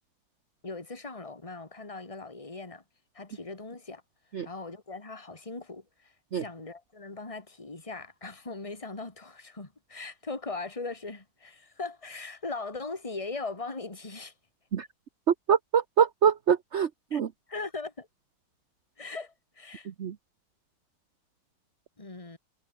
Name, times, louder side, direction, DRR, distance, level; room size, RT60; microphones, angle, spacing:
voice 1, 0.6-2.8 3.1-4.0 4.4-14.3 17.1-17.2 17.5-18.1 19.0-19.9 22.0-22.4, left 3 dB, 15° left, 2.7 m, -39 dB
voice 2, 15.3-17.3 20.0-20.1, right 8 dB, 50° right, 0.8 m, -25 dB
omnidirectional pair, 2.3 m